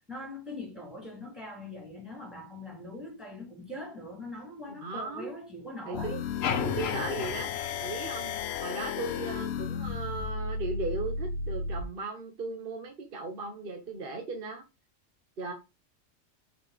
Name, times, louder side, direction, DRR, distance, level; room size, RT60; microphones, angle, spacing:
voice 1, 0.1-6.2, left 1 dB, ahead, 2.8 m, -42 dB
voice 2, 4.7-5.4 5.8-6.2 6.6-7.5 7.8-14.6 15.4-15.5, right 3 dB, 45° right, 1.1 m, -37 dB
sound 1, 5.9-11.9, left 5 dB, 65° left, 0.8 m, -34 dB
sound 2, 6.4-8.7, left 7 dB, 85° left, 1.2 m, -34 dB
5.5 x 4.0 x 5.0 m
omnidirectional pair, 1.3 m